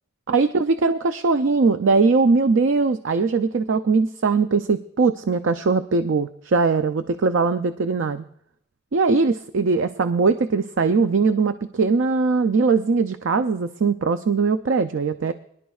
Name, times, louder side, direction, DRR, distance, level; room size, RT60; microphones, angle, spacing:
voice 1, 0.3-8.2 8.9-15.3, right 4 dB, 65° right, 10 dB, 0.4 m, -20 dB
23.5 x 11.0 x 2.4 m, 0.74 s
head